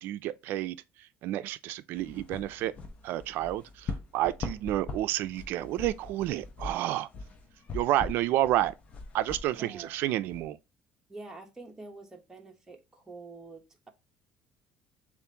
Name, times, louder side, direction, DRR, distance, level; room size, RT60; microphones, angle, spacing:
voice 1, 0.0-2.7 3.0-7.1 7.7-8.7 9.1-10.6, right 14 dB, 70° right, 0.4 m, -30 dB
sound 1, 2.0-10.5, left 3 dB, 35° left, 0.8 m, -41 dB
voice 2, 9.6-9.9 11.1-13.9, right 3 dB, 15° right, 1.0 m, -46 dB
6.9 x 2.5 x 2.8 m
cardioid pair, 130°, 4 cm